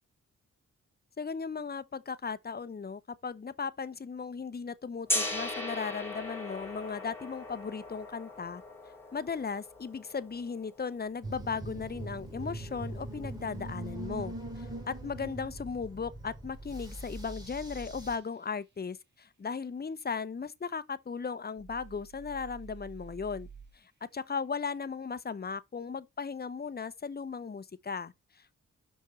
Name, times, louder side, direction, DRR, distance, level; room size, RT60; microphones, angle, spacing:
voice 1, 1.2-8.6 9.1-23.5 23.7-28.6, left 5 dB, 30° left, 0.8 m, -37 dB
Gong, 5.1-11.0, left 1 dB, 5° left, 3.3 m, -38 dB
sound 1, 11.2-18.2, right 1 dB, 10° right, 4.0 m, -42 dB
sound 2, 16.5-18.1 21.6-23.7, right 4 dB, 35° right, 2.6 m, -48 dB
6.0 x 5.3 x 6.3 m
cardioid pair, 50°, 32 cm